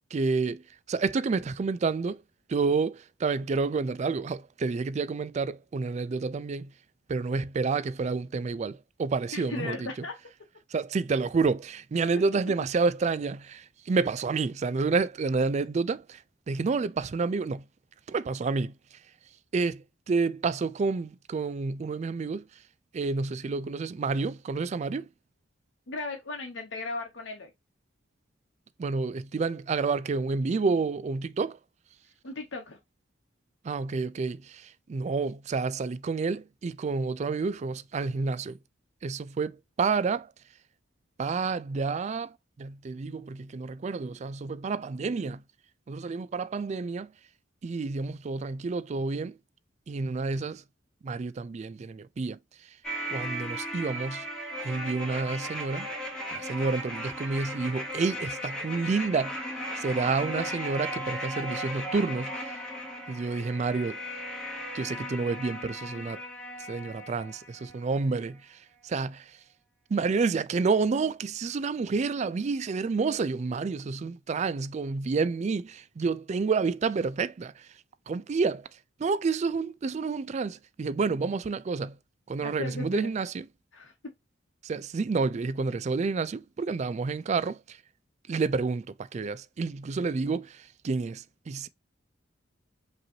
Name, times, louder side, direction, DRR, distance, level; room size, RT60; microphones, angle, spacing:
voice 1, 0.1-0.6 0.9-2.2 2.5-6.7 7.1-9.9 10.7-16.2 16.5-17.6 18.1-18.7 19.5-22.4 22.9-25.1 28.8-31.6 33.6-38.6 39.0-40.3 41.2-42.3 42.6-45.4 45.9-47.1 47.6-49.3 49.9-50.6 51.0-52.4 53.1-54.2 54.6-55.9 56.3-59.4 59.8-62.3 63.1-64.0 64.7-66.2 66.7-68.4 68.8-69.2 69.9-77.6 78.1-78.7 79.0-81.9 82.3-83.5 84.6-87.8 88.3-88.8 89.1-90.6 90.8-91.7, right 4 dB, 35° right, 0.3 m, -29 dB
voice 2, 9.3-10.1 25.9-27.5 32.2-32.8 60.0-60.3 82.4-83.1 83.7-83.9, left 3 dB, 70° left, 0.9 m, -37 dB
sound 1, 52.8-67.9 68.1-68.2, equal, 5° left, 1.3 m, -36 dB
5.1 x 3.0 x 2.7 m
head